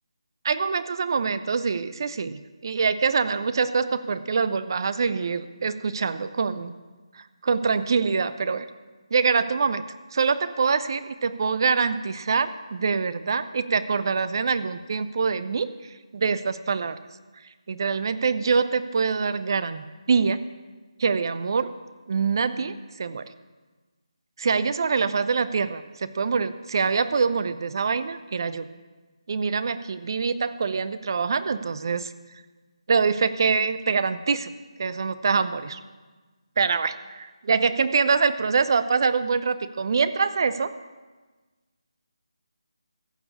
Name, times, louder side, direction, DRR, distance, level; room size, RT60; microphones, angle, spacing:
voice 1, 0.4-6.7 7.2-8.7 9.1-9.8 10.1-15.7 16.1-17.0 17.7-20.4 21.0-21.7 22.1-23.3 24.4-28.7 29.3-32.1 32.9-34.5 34.8-35.8 36.6-40.7, right 5 dB, 45° right, 13 dB, 0.7 m, -24 dB
15.0 x 7.0 x 8.5 m, 1.3 s
figure-of-eight pair, 155°, 3 cm